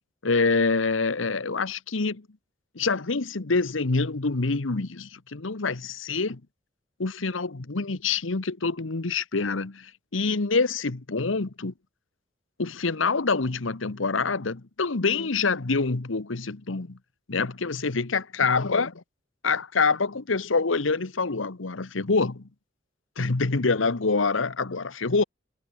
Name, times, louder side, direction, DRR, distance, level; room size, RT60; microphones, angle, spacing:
voice 1, 0.2-2.3 2.7-6.4 7.0-11.7 12.6-17.0 17.3-18.9 19.4-22.5 23.2-25.2, left 4 dB, 85° left, 1.1 m, -26 dB
head